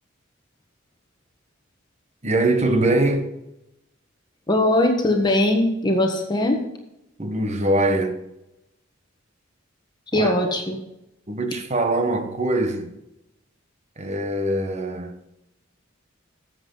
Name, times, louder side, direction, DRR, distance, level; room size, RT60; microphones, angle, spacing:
voice 1, 2.2-3.3 7.2-8.2 10.1-10.3 11.3-12.9 14.0-15.1, right 2 dB, 35° right, 1.2 m, -22 dB
voice 2, 4.5-6.6 10.1-10.8, left 1 dB, 20° left, 1.4 m, -20 dB
12.0 x 8.0 x 3.9 m
head